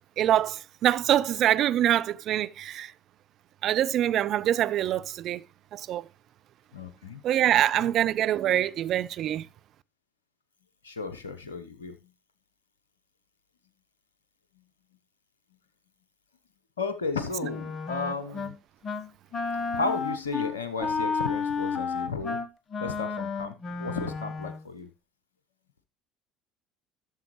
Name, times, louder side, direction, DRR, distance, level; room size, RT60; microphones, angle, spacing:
voice 1, 0.2-2.9 3.6-5.4 5.7-6.1 7.2-9.5, right 11 dB, 55° right, 0.4 m, -25 dB
voice 2, 6.7-7.2 7.5-7.9 10.8-12.0 16.8-18.6 19.7-22.4 22.8-24.9, left 4 dB, 85° left, 0.7 m, -34 dB
Wind instrument woodwind instrument, 17.4-18.5 18.8-19.1 19.3-24.6, left 5 dB, 35° left, 1.2 m, -31 dB
12.5 x 6.8 x 3.1 m
hypercardioid pair, 60°, 0 cm